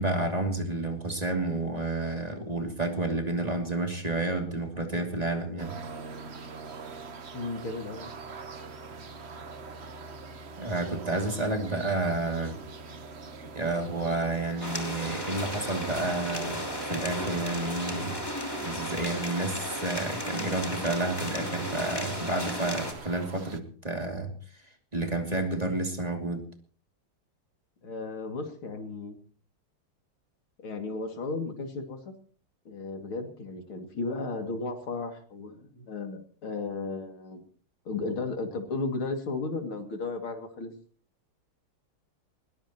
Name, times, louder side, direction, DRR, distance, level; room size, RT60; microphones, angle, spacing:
voice 1, 0.0-5.8 6.3-6.5 10.6-12.6 13.5-18.2 18.6-24.6 24.9-26.4, right 2 dB, 20° right, 3 dB, 2.7 m, -30 dB
sound 1, 5.6-23.6, right 4 dB, 40° right, 1.0 m, -43 dB
voice 2, 7.3-8.1 27.8-29.2 30.6-32.1 32.7-37.4 37.9-40.7, left 3 dB, 75° left, 5 dB, 3.3 m, -34 dB
sound 2, 14.6-22.9, left 1 dB, 10° left, 2.9 m, -35 dB
21.0 x 20.0 x 3.0 m, 0.44 s
omnidirectional pair, 2.3 m